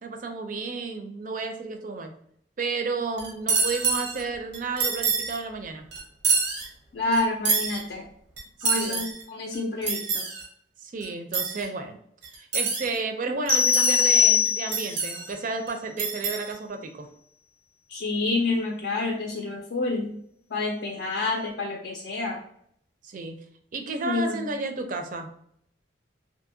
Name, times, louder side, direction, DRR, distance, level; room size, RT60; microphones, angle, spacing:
voice 1, 0.0-2.2 2.6-5.9 8.6-9.0 10.8-12.0 12.4-17.1 23.0-23.4 23.7-25.3, right 3 dB, 50° right, 6 dB, 0.4 m, -32 dB
sound 1, 3.2-4.2 4.5-5.4 5.9-6.7 7.1-7.8 8.4-9.2 9.5-10.5 11.0-11.1 11.3-11.7 12.2-13.0 13.5-14.2 14.5-15.3 15.7-15.8 16.0-16.5, right 4 dB, 85° right, 0.7 m, -27 dB
voice 2, 6.9-8.1 8.6-10.3 17.9-20.1 20.5-22.4 24.0-24.5, left 2 dB, 70° left, 0 dB, 0.4 m, -28 dB
sound 2, 13.5-15.0, left 7 dB, 5° left, 0.5 m, -21 dB
2.7 x 2.6 x 2.6 m, 0.67 s
head